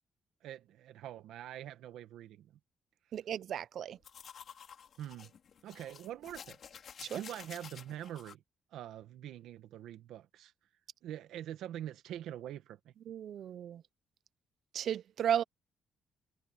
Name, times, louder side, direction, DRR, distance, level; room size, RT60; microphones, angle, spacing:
voice 1, 0.4-2.5 5.0-5.3 5.6-6.6 7.1-8.4 8.7-10.5 11.0-12.9, right 11 dB, 85° right, 1.6 m, -44 dB
voice 2, 3.1-4.0 7.0-7.2 13.1-13.8 14.7-15.4, right 9 dB, 55° right, 0.5 m, -34 dB
sound 1, 4.0-8.3, left 7 dB, 45° left, 4.1 m, -51 dB
cardioid pair, 160°, 0 cm